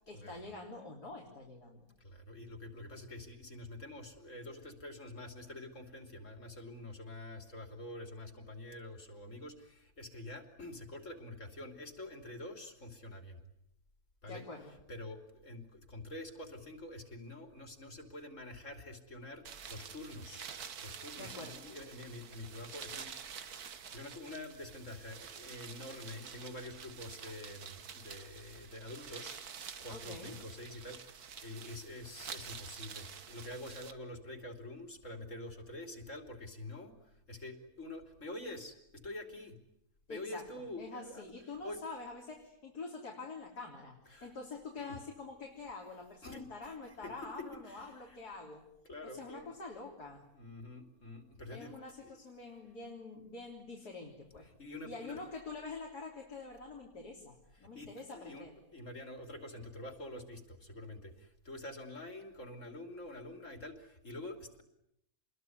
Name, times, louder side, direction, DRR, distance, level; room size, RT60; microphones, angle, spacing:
voice 1, 0.1-1.9 14.3-14.7 21.1-21.6 29.9-30.3 40.1-48.6 49.0-50.3 51.5-54.5 54.9-58.5, left 3 dB, 90° left, -1 dB, 4.1 m, -46 dB
voice 2, 2.0-13.4 14.2-14.4 14.9-20.4 20.8-29.4 29.8-39.6 40.1-41.3 41.6-41.8 44.1-44.3 44.8-45.0 46.2-47.1 47.7-48.2 48.9-49.5 50.3-51.7 52.0-52.2 54.6-55.1 57.5-58.5 58.7-64.6, left 1 dB, 50° left, 6 dB, 3.6 m, -47 dB
sound 1, 19.4-33.9, right 7 dB, 75° right, 1.9 m, -48 dB
28.0 x 22.0 x 9.5 m, 0.78 s
omnidirectional pair, 1.6 m